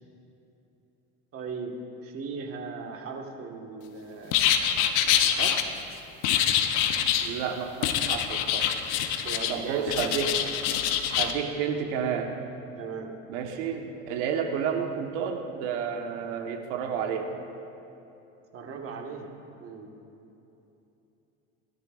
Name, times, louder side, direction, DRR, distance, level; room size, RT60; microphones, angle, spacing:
voice 1, 1.3-1.7 2.0-4.4 5.2-5.6 9.2-10.1 12.7-13.1 18.5-19.3 19.6-19.9, right 5 dB, 45° right, 1 dB, 1.7 m, -38 dB
sound 1, 4.3-5.6 6.2-7.3 7.8-9.5 9.9-11.3, left 9 dB, 75° left, 1.0 m, -25 dB
voice 2, 7.2-8.7 9.5-10.3 11.2-12.4 13.3-17.3, right 7 dB, 85° right, 3 dB, 1.5 m, -30 dB
21.0 x 12.5 x 2.6 m, 2.9 s
supercardioid pair, 115°, 33 cm